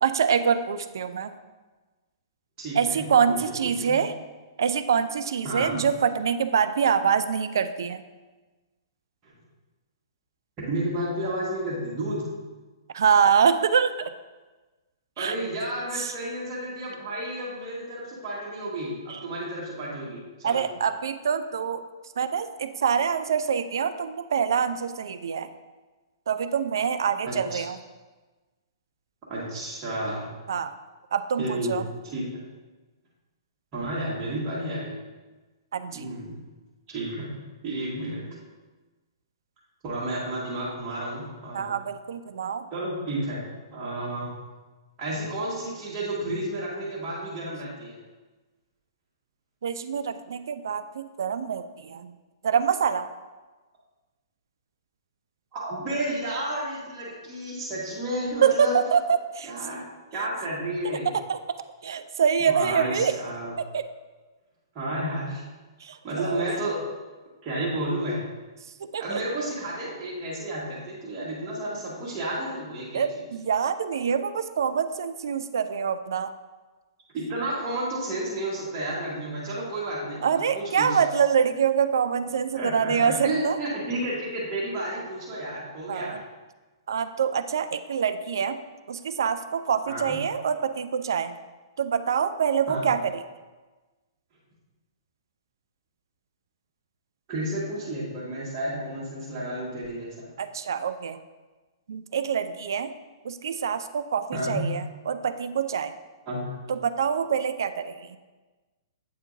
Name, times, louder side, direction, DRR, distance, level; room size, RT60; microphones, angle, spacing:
voice 1, 0.0-1.3 2.8-4.1 4.6-8.0 12.9-14.1 15.2-15.3 16.0-16.1 19.1-19.2 20.4-21.8 22.2-25.5 26.3-27.8 30.5-30.7 31.1-31.8 35.7-36.1 41.5-42.6 49.6-52.1 52.4-53.1 58.4-59.5 61.3-61.4 61.8-63.1 63.6-63.8 65.8-66.5 68.9-69.2 72.9-76.3 80.2-83.6 85.9-86.2 86.9-88.6 88.9-91.3 91.8-93.2 100.4-101.2 101.9-102.9 103.2-105.9 106.7-108.0, right 7 dB, 60° right, 11 dB, 0.3 m, -25 dB
voice 2, 2.6-3.4 3.6-4.0 5.4-5.8 9.2-9.3 10.6-12.3 15.2-20.6 27.3-27.6 29.3-30.3 31.4-31.8 32.1-32.2 33.7-35.0 35.9-36.4 36.9-37.3 37.6-38.3 39.8-41.7 42.7-43.4 43.7-44.3 45.0-48.0 55.5-58.8 59.4-59.8 60.1-61.1 62.5-63.5 64.7-65.4 66.0-66.8 67.4-68.2 69.0-73.0 77.1-81.0 82.5-86.2 89.8-90.2 92.7-92.9 97.3-100.3 104.3-104.6 106.2-106.4, right 1 dB, 25° right, -7 dB, 1.5 m, -31 dB
8.2 x 4.3 x 2.6 m, 1.2 s
figure-of-eight pair, 110°, 2 cm